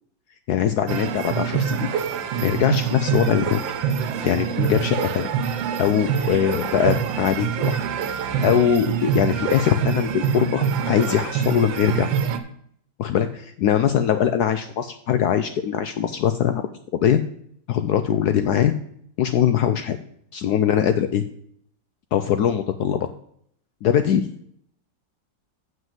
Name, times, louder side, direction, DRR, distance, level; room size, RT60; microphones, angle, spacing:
voice 1, 0.5-1.9 2.4-3.6 4.2-5.3 5.8-7.8 8.4-12.1 13.0-16.6 16.9-17.2 17.7-18.7 19.2-20.0 20.3-21.2 22.1-23.1 23.8-24.3, left 9 dB, 70° left, 9 dB, 1.0 m, -21 dB
sound 1, 0.9-12.4, right 7 dB, 85° right, 1.6 m, -25 dB
7.4 x 6.2 x 7.4 m, 0.66 s
omnidirectional pair, 2.0 m